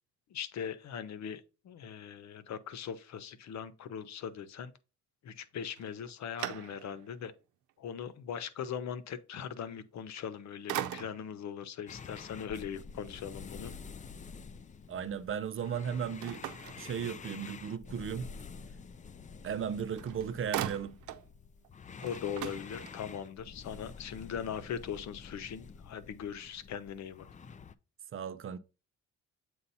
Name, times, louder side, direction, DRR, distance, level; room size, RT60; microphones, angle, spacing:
voice 1, 0.3-4.7 5.2-7.3 7.8-13.7 22.0-27.3, left 8 dB, 65° left, 0.8 m, -40 dB
sound 1, 5.7-7.2 7.7-7.8 10.0-10.4 10.7-11.4 16.2-17.5 19.6-19.7 20.0-21.3 21.6-21.7 22.0-23.3, right 12 dB, 85° right, 0.6 m, -40 dB
sound 2, 11.9-27.7, left 5 dB, 25° left, 0.4 m, -48 dB
voice 2, 14.9-16.4 16.8-18.3 19.4-21.0 28.1-28.6, right 8 dB, 45° right, 0.5 m, -36 dB
7.7 x 2.7 x 5.4 m
cardioid pair, 90°, 30 cm